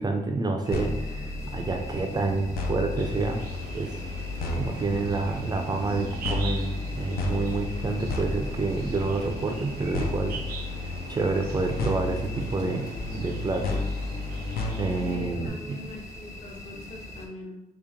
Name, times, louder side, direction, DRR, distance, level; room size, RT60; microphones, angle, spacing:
voice 1, 0.0-3.5 3.7-3.9 4.5-10.4 11.1-12.9 13.1-13.8 14.8-15.8, right 3 dB, 25° right, 3 dB, 0.4 m, -28 dB
sound 1, 0.6-17.3, left 1 dB, 20° left, 0.7 m, -42 dB
sound 2, 0.7-15.5, left 3 dB, 80° left, 0.5 m, -33 dB
sound 3, 3.0-15.2, right 5 dB, 90° right, 0.4 m, -42 dB
voice 2, 15.0-17.6, left 2 dB, 50° left, 0 dB, 0.8 m, -43 dB
3.2 x 2.8 x 3.5 m, 0.87 s
wide cardioid pair, 135°, 15 cm